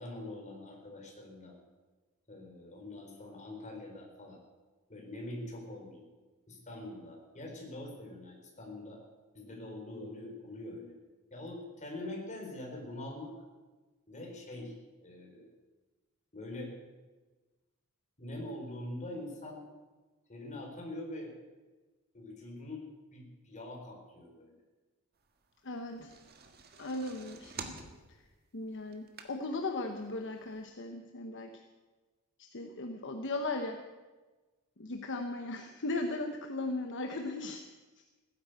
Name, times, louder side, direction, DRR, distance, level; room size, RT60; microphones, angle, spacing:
voice 1, 0.0-1.5 2.3-4.4 4.9-6.0 6.5-9.0 9.3-10.9 11.3-13.3 14.1-14.7 15.0-15.5 16.3-16.7 18.2-19.6 20.3-21.3 22.1-24.5, left 1 dB, 35° left, 1 dB, 4.2 m, -44 dB
voice 2, 25.6-26.1 26.8-27.5 28.5-31.5 32.5-33.8 34.8-37.6, left 2 dB, 55° left, 5 dB, 1.1 m, -37 dB
sound 1, 25.8-29.7 30.2-30.3 30.5-30.6, right 5 dB, 45° right, 1.7 m, -47 dB
17.0 x 10.5 x 8.1 m, 1.2 s
head